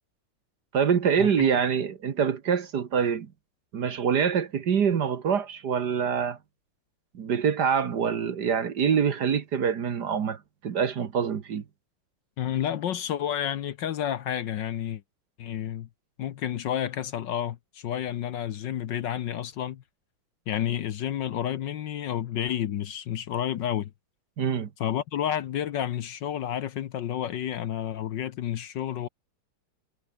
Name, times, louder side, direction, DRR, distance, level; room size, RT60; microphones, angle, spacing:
voice 1, 0.7-3.3 3.7-6.4 7.1-11.6 24.4-24.7, right 7 dB, 55° right, 1.8 m, -25 dB
voice 2, 12.4-15.0 15.4-15.9 16.2-19.8 20.5-23.9 24.8-29.1, left 10 dB, 65° left, 1.4 m, -30 dB
omnidirectional pair, 2.4 m